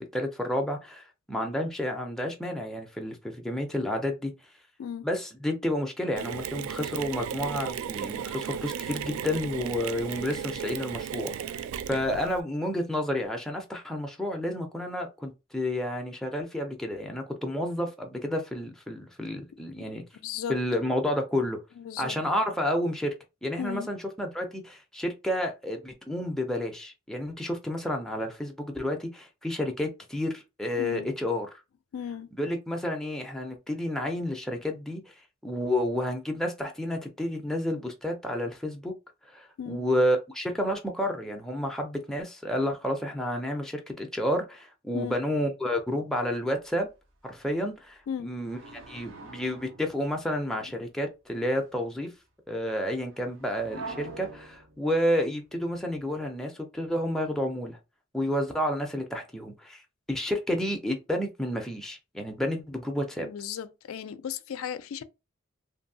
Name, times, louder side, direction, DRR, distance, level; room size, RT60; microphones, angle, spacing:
voice 1, 0.0-4.3 5.0-11.6 11.9-20.0 20.5-21.6 22.0-23.1 23.4-31.6 32.4-35.0 35.4-38.9 39.3-46.9 47.2-48.6 48.9-52.1 52.5-57.8 58.1-59.8 60.1-63.3, left 1 dB, ahead, 0.5 m, -30 dB
Mechanisms, 6.2-12.4, right 8 dB, 90° right, 0.3 m, -35 dB
voice 2, 20.2-20.6 21.8-22.2 23.6-23.9 30.8-31.1 31.9-32.3 39.6-39.9 44.9-45.2 48.1-48.3 63.2-65.0, left 8 dB, 80° left, 0.3 m, -36 dB
sound 1, 46.8-46.9 47.2-47.4 48.4-50.7 51.3-51.6 53.0-56.2, right 3 dB, 65° right, 0.7 m, -45 dB
2.6 x 2.6 x 2.6 m
head